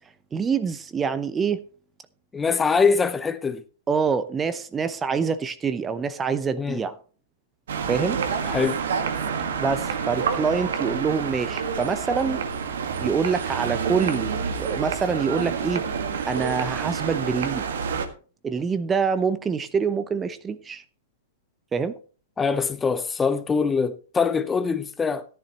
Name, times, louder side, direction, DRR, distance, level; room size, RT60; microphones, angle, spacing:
voice 1, 0.3-1.6 3.9-7.0 7.8-8.2 9.6-12.4 13.0-15.8 16.3-17.6 18.4-20.8 21.7-21.9, right 5 dB, 15° right, 0.8 m, -25 dB
voice 2, 2.3-3.6 6.6-6.8 8.5-8.8 22.4-25.3, left 5 dB, 15° left, 0.8 m, -23 dB
sound 1, 7.7-18.1, right 6 dB, 65° right, 1.6 m, -28 dB
14.5 x 10.5 x 3.0 m
figure-of-eight pair, 110°, 0 cm